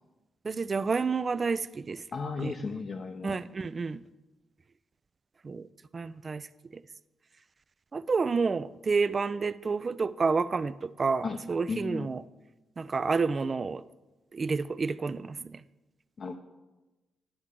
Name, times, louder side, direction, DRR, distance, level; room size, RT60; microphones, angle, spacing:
voice 1, 0.4-2.0 2.4-2.5 3.2-4.0 5.4-5.7 5.9-6.4 6.7-6.8 7.9-12.2 12.8-13.8 14.3-15.6, right 4 dB, 40° right, 15 dB, 0.3 m, -29 dB
voice 2, 2.1-3.4 11.2-11.4 11.7-12.1 16.2-16.4, left 4 dB, 50° left, 3 dB, 0.6 m, -34 dB
10.0 x 8.1 x 3.7 m, 1.1 s
cardioid pair, 75°, 0 cm